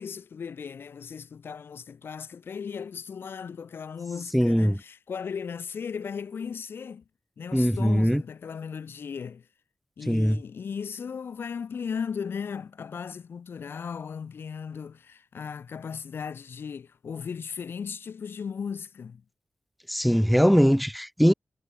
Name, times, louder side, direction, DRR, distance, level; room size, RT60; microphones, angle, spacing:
voice 1, 0.0-7.0 7.4-9.4 10.0-19.2, left 6 dB, 85° left, 2.3 m, -36 dB
voice 2, 4.3-4.8 7.5-8.2 10.1-10.4 19.9-21.3, equal, ahead, 0.7 m, -21 dB
cardioid pair, 65°, 4 cm